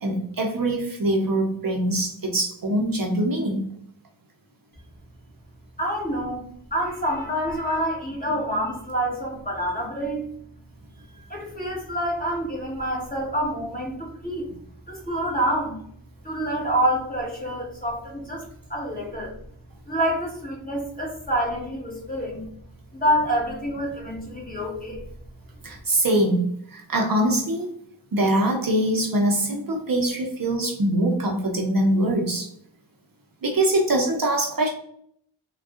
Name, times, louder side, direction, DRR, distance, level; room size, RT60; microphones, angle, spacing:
voice 1, 0.0-3.6 25.6-26.4 26.7-27.7 28.1-32.5 33.4-34.7, right 1 dB, 50° right, 1 dB, 0.6 m, -23 dB
voice 2, 5.8-10.3 11.3-14.6 14.9-15.8 16.2-19.3 19.9-22.5 22.9-25.0, equal, 20° left, -4 dB, 1.3 m, -27 dB
3.5 x 2.3 x 2.4 m, 0.66 s
wide cardioid pair, 70°, 45 cm